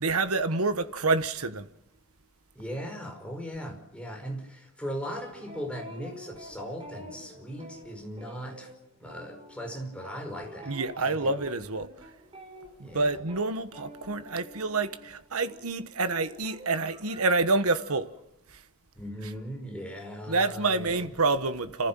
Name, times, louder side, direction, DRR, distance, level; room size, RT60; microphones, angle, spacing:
voice 1, 0.0-1.7 10.7-11.9 12.8-18.1 20.3-21.9, right 3 dB, 80° right, 1.3 m, -27 dB
voice 2, 2.6-8.7 9.0-11.5 12.8-13.2 19.0-21.1, equal, 5° left, 5.1 m, -39 dB
sound 1, 5.0-15.2 15.5-18.2, equal, 25° right, 5.2 m, -48 dB
30.0 x 14.5 x 7.6 m
head